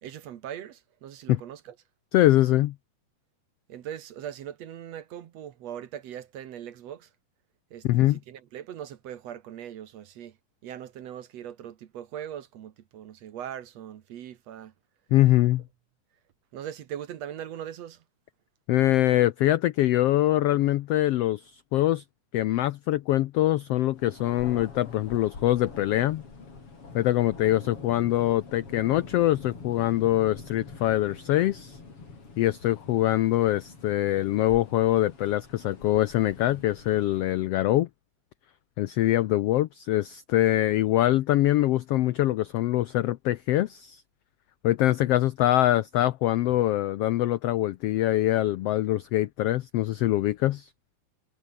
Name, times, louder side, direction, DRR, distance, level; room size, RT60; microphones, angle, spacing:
voice 1, 0.0-1.8 3.7-7.1 7.7-10.4 10.6-14.7 16.5-18.0, right 10 dB, 65° right, 2.2 m, -40 dB
voice 2, 2.1-2.7 7.8-8.2 15.1-15.6 18.7-22.0 22.3-26.2 26.9-31.8 32.4-37.9 38.8-44.0 44.6-50.7, left 14 dB, 85° left, 1.3 m, -24 dB
Thunder, 23.9-37.6, left 4 dB, 45° left, 5.6 m, -45 dB
omnidirectional pair, 3.6 m